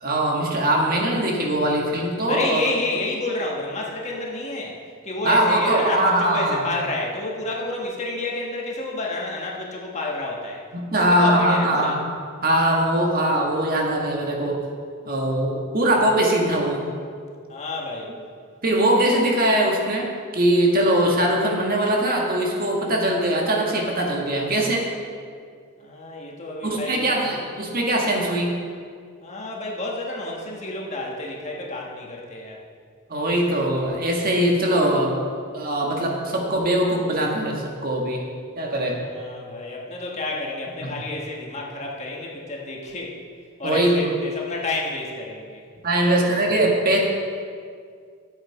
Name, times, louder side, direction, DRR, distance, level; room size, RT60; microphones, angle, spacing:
voice 1, 0.0-2.6 5.2-6.6 10.7-12.0 12.4-14.6 15.1-16.8 18.6-24.9 26.6-28.5 33.1-35.2 35.5-38.2 38.6-39.0 40.8-41.0 43.6-44.0 45.8-47.0, right 1 dB, 40° right, -1 dB, 1.7 m, -21 dB
voice 2, 2.3-4.8 5.0-10.6 10.9-12.0 17.5-18.1 25.8-27.4 29.2-32.6 39.0-43.1 43.6-45.6 46.0-46.1, left 2 dB, 30° left, -2 dB, 1.4 m, -30 dB
11.5 x 8.1 x 4.9 m, 2.1 s
head